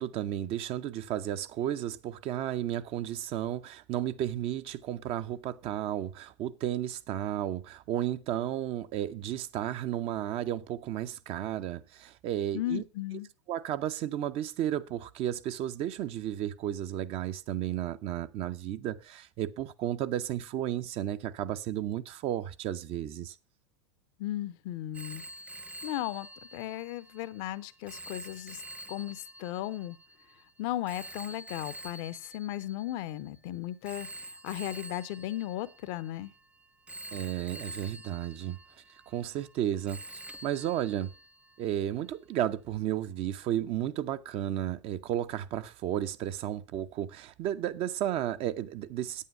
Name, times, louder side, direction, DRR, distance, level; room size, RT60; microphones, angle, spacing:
voice 1, 0.0-12.8 13.5-23.4 37.1-38.6 39.1-40.0 40.4-41.1 41.6-49.3, right 11 dB, 40° right, 0.7 m, -33 dB
voice 2, 12.5-13.3 24.2-25.2 25.8-28.6 28.9-30.0 30.6-36.3, left 14 dB, 50° left, 0.7 m, -36 dB
Telephone, 24.9-33.3 33.9-36.4 36.9-39.6 39.9-41.6, right 1 dB, 10° right, 0.4 m, -47 dB
9.2 x 8.4 x 5.3 m
figure-of-eight pair, 90°, 15 cm